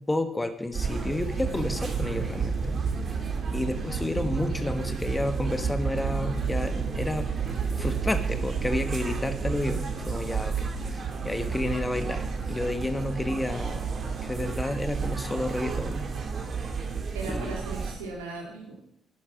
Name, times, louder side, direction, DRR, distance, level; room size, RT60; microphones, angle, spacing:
voice 1, 0.0-2.7 3.1-3.2 3.5-7.3 7.8-13.9 14.2-16.1 17.3-17.5, left 1 dB, 15° left, 8 dB, 1.3 m, -31 dB
sound 1, 0.7-18.0, right 5 dB, 50° right, 2.4 m, -31 dB
voice 2, 17.1-18.9, right 3 dB, 80° right, -1 dB, 2.7 m, -38 dB
11.5 x 10.5 x 6.1 m, 0.76 s
figure-of-eight pair, 45°, 0 cm